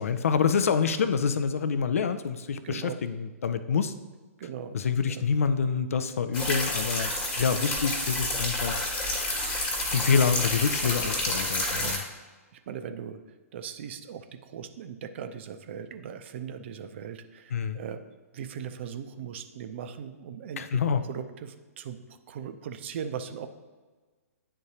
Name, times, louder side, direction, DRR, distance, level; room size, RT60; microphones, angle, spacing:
voice 1, 0.0-3.9 4.7-7.1 7.4-8.8 9.9-12.0 17.5-17.8 20.6-21.0, left 6 dB, 65° left, 11 dB, 0.4 m, -26 dB
voice 2, 2.6-3.0 4.4-4.8 5.1-5.2 11.7-12.0 12.7-13.2 13.5-18.0 18.3-20.6 21.1-22.0 22.3-23.5, right 8 dB, 50° right, 8 dB, 0.5 m, -39 dB
sound 1, 6.3-12.0, left 1 dB, 15° left, 1.3 m, -29 dB
9.6 x 3.7 x 2.8 m, 1.3 s
figure-of-eight pair, 120°, 8 cm